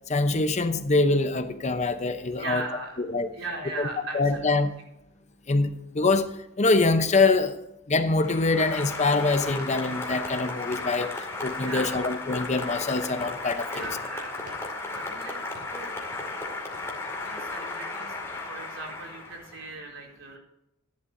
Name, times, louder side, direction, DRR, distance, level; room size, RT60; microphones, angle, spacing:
voice 1, 0.1-2.6 3.1-3.3 3.8-3.9 4.1-4.7 5.5-7.6 7.9-13.9, left 3 dB, 35° left, 8 dB, 0.8 m, -24 dB
voice 2, 2.4-3.0 3.3-4.6 11.6-12.1 13.7-14.4 15.0-15.4 15.7-15.9 16.6-16.7 17.2-20.4, right 3 dB, 70° right, -1 dB, 4.3 m, -38 dB
Applause, 8.2-19.7, left 3 dB, 15° left, 2.2 m, -35 dB
sound 1, 8.9-9.1 9.5-9.8 10.1-10.4 10.7-11.0 11.3-11.7 11.9-12.3 12.5-12.9 13.2-13.5 13.8-14.1 14.4-15.3 15.5-15.9 16.1-16.4 16.7-16.8, right 1 dB, 45° right, 5.1 m, -49 dB
15.0 x 11.0 x 2.7 m, 0.87 s
head